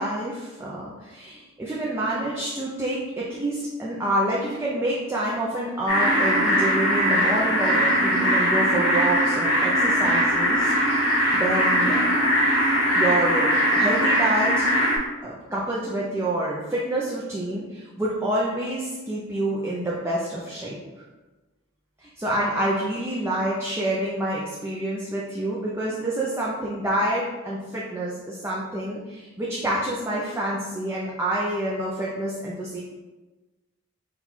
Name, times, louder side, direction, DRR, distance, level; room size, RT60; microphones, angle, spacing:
voice 1, 0.0-12.1 12.9-14.7 15.2-20.8 22.0-32.8, right 1 dB, 10° right, -5 dB, 0.4 m, -27 dB
sound 1, 5.9-15.0, equal, 85° left, 1.1 m, -21 dB
4.3 x 2.3 x 4.0 m, 1.2 s
head